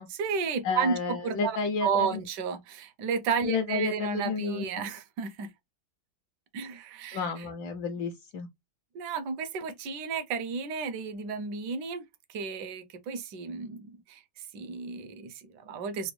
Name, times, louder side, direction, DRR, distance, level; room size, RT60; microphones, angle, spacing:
voice 1, 0.1-5.5 6.5-7.5 8.9-16.1, right 6 dB, 70° right, 1.1 m, -33 dB
voice 2, 0.6-2.2 3.4-4.6 7.1-8.5, left 4 dB, 75° left, 1.2 m, -31 dB
3.9 x 2.1 x 3.0 m
omnidirectional pair, 2.2 m